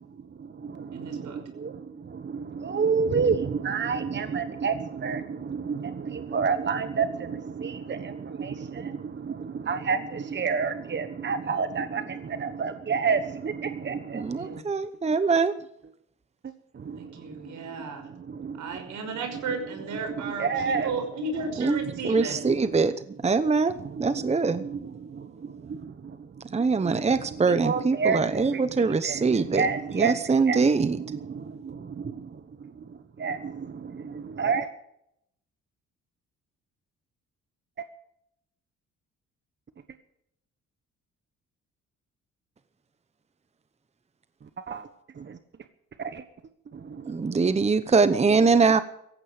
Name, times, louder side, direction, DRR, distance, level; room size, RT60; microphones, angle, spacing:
voice 1, 0.0-14.6 15.1-15.2 16.4-18.7 19.5-19.6 20.1-20.9 21.8-23.0 23.4-34.7 37.8-37.9 44.4-44.9 45.1-45.4 46.0-46.2 46.7-47.6 47.8-47.9 48.5-48.6, right 5 dB, 35° right, 10 dB, 1.2 m, -31 dB
voice 2, 0.9-1.4 14.1-14.7 17.0-18.1 18.6-22.4, right 3 dB, 75° right, 6 dB, 5.7 m, -34 dB
voice 3, 14.1-15.5 21.6-21.8 22.0-22.9 23.2-24.6 26.5-29.6 29.9-31.0 47.1-48.8, right 4 dB, 20° right, 12 dB, 0.9 m, -23 dB
17.0 x 15.5 x 5.1 m, 0.77 s
cardioid pair, 90°, 30 cm